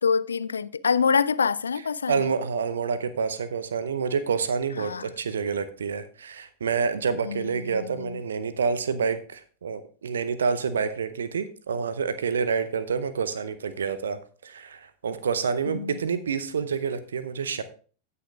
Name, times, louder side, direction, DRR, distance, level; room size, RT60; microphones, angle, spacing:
voice 1, 0.0-2.3 4.8-5.1 7.2-8.2 15.7-16.0, left 6 dB, 70° left, 0.3 m, -26 dB
voice 2, 2.1-17.6, right 6 dB, 65° right, 0.7 m, -28 dB
16.5 x 6.9 x 2.4 m
figure-of-eight pair, 90°, 0 cm